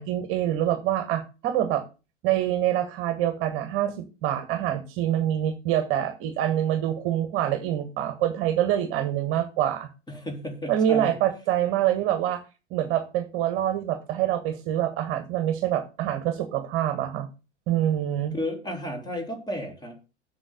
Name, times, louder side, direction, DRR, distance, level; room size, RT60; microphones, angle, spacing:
voice 1, 0.0-1.8 2.2-9.9 10.7-12.4 12.7-17.3 17.7-18.3, right 11 dB, 35° right, 9 dB, 1.4 m, -26 dB
voice 2, 10.1-11.2 18.3-20.0, equal, 10° left, 4 dB, 3.0 m, -32 dB
7.8 x 6.1 x 8.0 m, 0.31 s
figure-of-eight pair, 90°, 35 cm